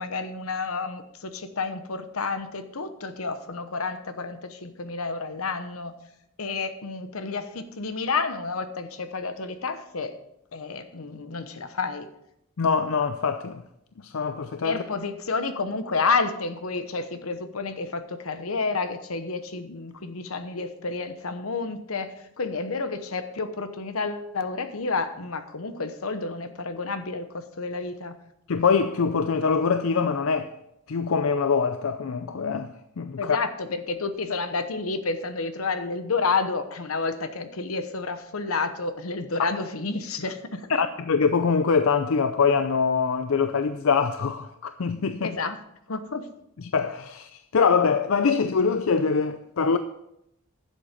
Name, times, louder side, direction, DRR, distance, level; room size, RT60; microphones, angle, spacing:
voice 1, 0.0-5.9 6.4-10.1 10.5-12.1 14.6-28.1 33.2-40.8 45.2-45.6 45.9-46.2, left 4 dB, 90° left, 1.0 m, -30 dB
voice 2, 12.6-13.6 14.0-14.8 28.5-30.6 30.9-33.4 40.7-45.4 46.6-49.8, left 5 dB, 70° left, 0.5 m, -24 dB
11.0 x 7.5 x 5.1 m
head